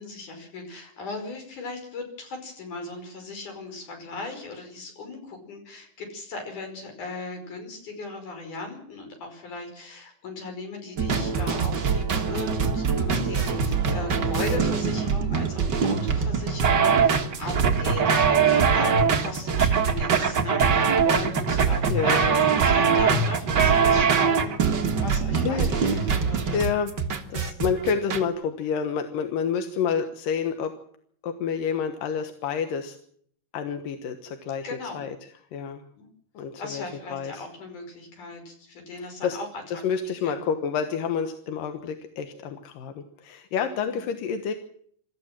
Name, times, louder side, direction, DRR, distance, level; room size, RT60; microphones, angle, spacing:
voice 1, 0.0-26.7 34.6-35.0 36.0-36.1 36.6-39.5 39.7-40.4 43.8-44.1, left 3 dB, 65° left, 4 dB, 6.7 m, -37 dB
sound 1, 11.0-28.2, right 6 dB, 40° right, 1.8 m, -22 dB
voice 2, 21.9-22.5 25.4-26.2 26.5-30.7 31.2-33.0 33.5-34.7 34.9-35.2 35.5-35.8 36.3-36.8 37.1-37.5 39.2-39.4 39.7-44.5, left 6 dB, 90° left, 7 dB, 3.0 m, -29 dB
26.0 x 14.5 x 7.5 m, 0.63 s
omnidirectional pair, 3.8 m